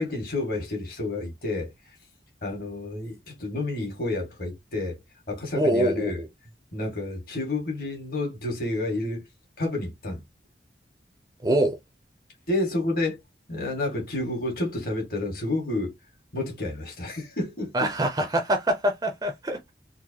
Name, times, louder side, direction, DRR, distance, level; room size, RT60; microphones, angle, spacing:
voice 1, 0.0-1.7 2.4-5.0 5.3-6.2 6.7-9.2 9.6-10.2 12.5-13.2 13.5-15.9 16.3-17.9, left 2 dB, 50° left, 1.9 m, -30 dB
voice 2, 5.6-6.3 11.4-11.8 17.7-19.7, right 1 dB, 20° right, 0.5 m, -24 dB
3.9 x 2.6 x 2.8 m
head